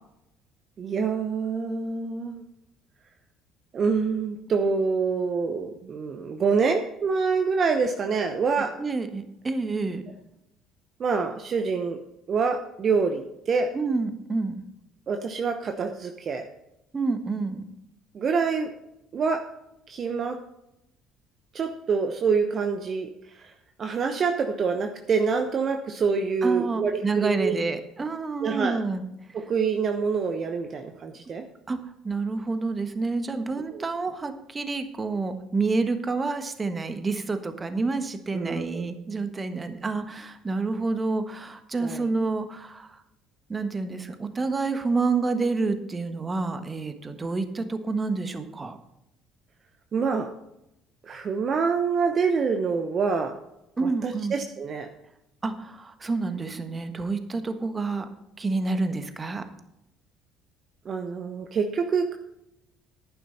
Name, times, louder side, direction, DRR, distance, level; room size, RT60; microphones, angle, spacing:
voice 1, 0.8-2.4 3.7-8.7 11.0-12.0 12.3-13.7 15.1-16.5 18.1-18.7 19.1-19.4 19.9-20.4 21.5-23.1 23.8-27.6 28.4-28.8 29.3-31.4 33.7-33.8 38.3-38.9 41.8-42.1 49.9-50.3 51.0-53.4 53.8-54.9 60.9-62.1, right 5 dB, 45° right, 6 dB, 1.0 m, -26 dB
voice 2, 8.8-10.0 13.7-14.6 16.9-17.7 26.4-29.0 31.7-31.8 32.0-43.0 43.5-48.8 53.8-54.3 55.4-58.1 58.4-59.4, right 3 dB, 25° right, 9 dB, 1.4 m, -28 dB
11.0 x 9.7 x 4.2 m, 0.84 s
hypercardioid pair, 60°, 0 cm